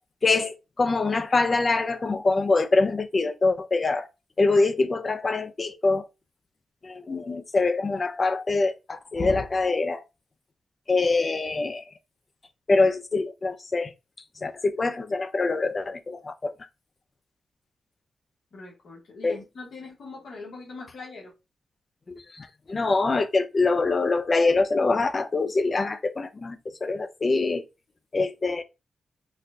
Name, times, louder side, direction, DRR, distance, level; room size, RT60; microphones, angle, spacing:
voice 1, 0.2-4.1 4.4-6.1 6.8-10.0 10.9-11.9 12.7-13.9 14.4-16.5 19.2-19.4 22.1-27.6 28.1-28.6, left 3 dB, 40° left, 0.5 m, -24 dB
voice 2, 18.5-21.3, left 3 dB, 75° left, 1.3 m, -41 dB
4.0 x 2.2 x 2.6 m
cardioid pair, 80°, 0 cm